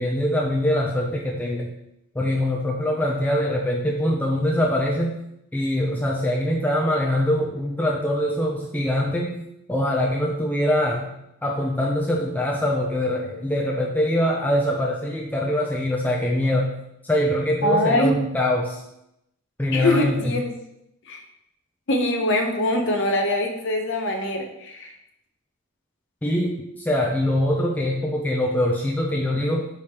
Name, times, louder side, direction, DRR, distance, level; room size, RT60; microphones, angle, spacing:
voice 1, 0.0-1.7 2.2-5.2 5.5-9.4 9.7-11.1 11.4-16.7 17.0-18.8 19.6-20.3 26.2-29.7, left 1 dB, 10° left, -1 dB, 0.3 m, -23 dB
voice 2, 17.6-18.1 19.7-20.5 21.1-21.2 21.9-24.9, left 1 dB, 55° left, 3 dB, 0.6 m, -23 dB
4.8 x 3.3 x 2.8 m, 0.81 s
head